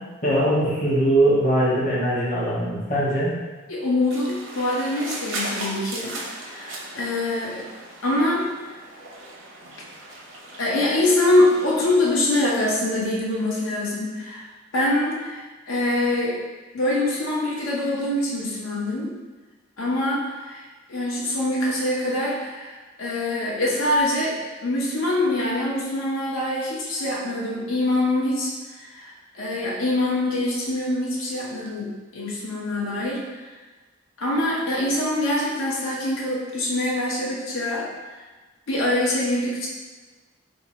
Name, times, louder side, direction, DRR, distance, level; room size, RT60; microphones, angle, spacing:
voice 1, 0.2-3.3, right 1 dB, 40° left, -7 dB, 0.8 m, -21 dB
voice 2, 3.7-6.2 6.4-7.7 8.0-8.5 10.6-14.4 14.7-16.4 16.7-19.1 19.8-20.6 20.9-33.4 34.2-38.2 38.7-39.7, left 1 dB, 85° left, -4 dB, 0.6 m, -24 dB
sound 1, 4.1-12.0, right 2 dB, 70° right, 0.7 m, -37 dB
2.6 x 2.6 x 4.1 m, 1.3 s
head